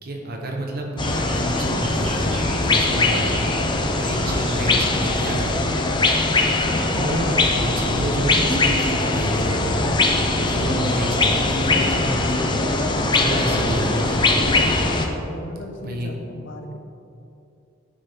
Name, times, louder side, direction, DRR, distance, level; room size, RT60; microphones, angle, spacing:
voice 1, 0.0-5.6 6.9-9.8 10.4-12.4 12.7-14.4 15.8-16.2, right 1 dB, 50° right, 1 dB, 1.0 m, -29 dB
sound 1, 1.0-15.1, left 2 dB, 25° left, 0.5 m, -21 dB
sound 2, 1.0-10.1, right 1 dB, 35° right, 1.5 m, -42 dB
voice 2, 15.1-16.8, left 1 dB, 70° left, 5 dB, 0.7 m, -36 dB
9.6 x 5.5 x 3.6 m, 2.7 s
head